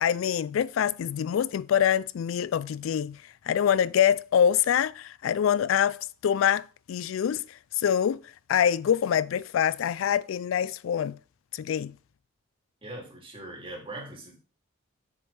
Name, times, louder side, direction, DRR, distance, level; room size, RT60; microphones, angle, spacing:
voice 1, 0.0-3.2 3.5-8.2 8.5-11.2 11.5-11.9, left 9 dB, 75° left, 0.3 m, -25 dB
voice 2, 12.8-14.4, right 2 dB, 25° right, 2.8 m, -41 dB
7.5 x 7.1 x 3.3 m
head